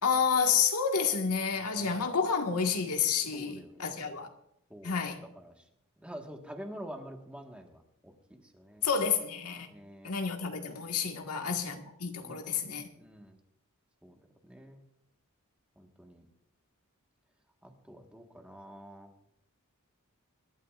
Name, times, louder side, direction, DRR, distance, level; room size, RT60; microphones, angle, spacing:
voice 1, 0.0-4.3 4.8-5.2 8.8-9.7 10.0-12.9, left 6 dB, 90° left, 1.7 m, -29 dB
voice 2, 1.5-1.9 3.3-4.1 4.7-4.9 5.3-5.5 6.0-8.1 8.5-8.9 9.7-10.1 11.2-11.6 12.2-12.5 12.9-13.4 14.0-14.1 14.4-14.8 15.8-16.3 17.6-19.1, equal, 5° right, 1.5 m, -47 dB
25.0 x 12.5 x 2.5 m
head